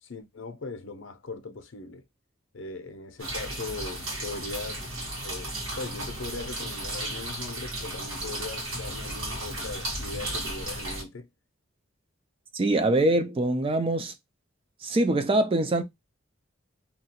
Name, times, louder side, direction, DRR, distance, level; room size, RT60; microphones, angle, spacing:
voice 1, 0.0-2.0 2.5-11.3, left 3 dB, 65° left, 0.6 m, -39 dB
sound 1, 3.2-11.0, right 1 dB, 85° right, 1.5 m, -34 dB
voice 2, 12.5-14.1 14.8-15.8, right 2 dB, 25° right, 0.3 m, -24 dB
2.9 x 2.3 x 2.7 m
head